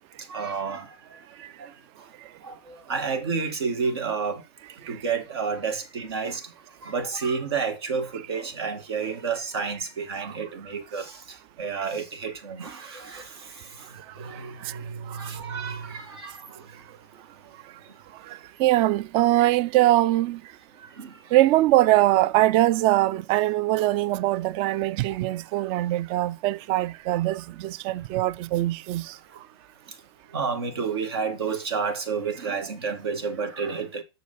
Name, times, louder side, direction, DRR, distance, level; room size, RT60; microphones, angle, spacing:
voice 1, 0.3-1.2 1.6-2.1 2.4-4.4 4.9-6.5 6.8-16.8 17.8-17.9 20.8-21.2 25.1-25.2 30.3-34.0, right 5 dB, 80° right, 2.1 m, -31 dB
voice 2, 14.3-14.8 15.1-15.2 18.2-20.4 21.3-29.2, right 16 dB, 45° right, 0.5 m, -22 dB
6.4 x 4.8 x 5.6 m
hypercardioid pair, 110°, 13 cm